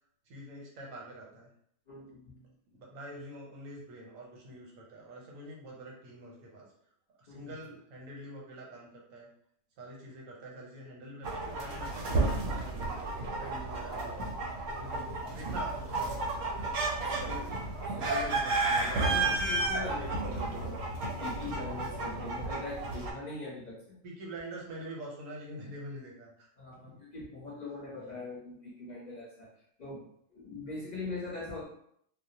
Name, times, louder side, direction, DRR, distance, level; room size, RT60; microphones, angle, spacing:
voice 1, 0.3-1.5 2.7-6.6 7.1-9.3 9.8-13.0 13.4-14.3 14.8-16.7 17.0-17.9 22.1-22.5 24.0-26.5 26.9-27.0 27.9-28.2, right 1 dB, 90° right, -1 dB, 1.1 m, -46 dB
voice 2, 1.9-2.5 7.3-7.5 14.8-15.0 17.3-17.5 17.8-24.0 26.6-29.5 29.8-30.1 30.3-31.7, left 3 dB, 40° left, -6 dB, 0.7 m, -42 dB
sound 1, 11.2-23.1, right 2 dB, 65° right, 0.7 m, -32 dB
2.3 x 2.0 x 2.7 m, 0.68 s
omnidirectional pair, 1.4 m